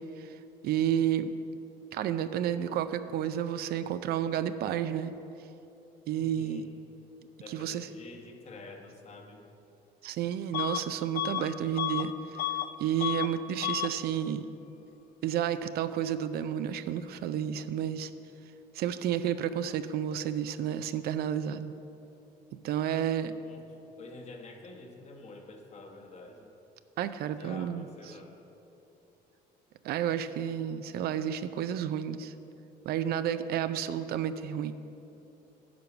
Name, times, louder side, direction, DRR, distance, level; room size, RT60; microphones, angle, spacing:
voice 1, 0.6-1.3 1.9-5.1 6.1-6.7 7.5-7.9 10.0-12.1 12.8-14.5 15.2-18.1 18.7-21.7 22.6-23.3 27.0-27.9 29.8-32.3 32.8-34.7, right 9 dB, 65° right, 12 dB, 0.4 m, -31 dB
voice 2, 6.1-6.7 7.4-9.5 23.2-23.6 24.0-26.5 27.2-28.3, left 3 dB, 40° left, 3 dB, 1.2 m, -48 dB
Bus / Alarm, 10.5-10.9 11.1-12.7 13.0-13.3 13.6-14.0, left 13 dB, 65° left, 0.5 m, -32 dB
10.5 x 4.7 x 7.0 m, 2.9 s
cardioid pair, 110°, 17 cm